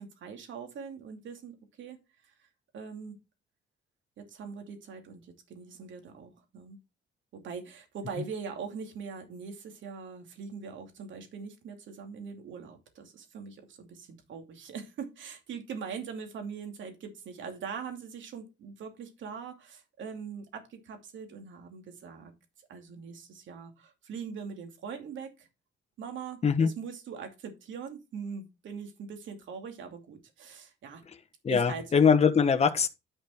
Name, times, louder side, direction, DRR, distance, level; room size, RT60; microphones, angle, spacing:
voice 1, 0.0-2.0 2.7-3.2 4.2-6.8 7.3-22.3 22.7-25.5 26.0-31.0 31.5-32.1, right 6 dB, 70° right, 2.7 m, -42 dB
voice 2, 31.4-32.9, left 6 dB, 30° left, 1.1 m, -22 dB
10.5 x 5.2 x 4.4 m
cardioid pair, 90°, 20 cm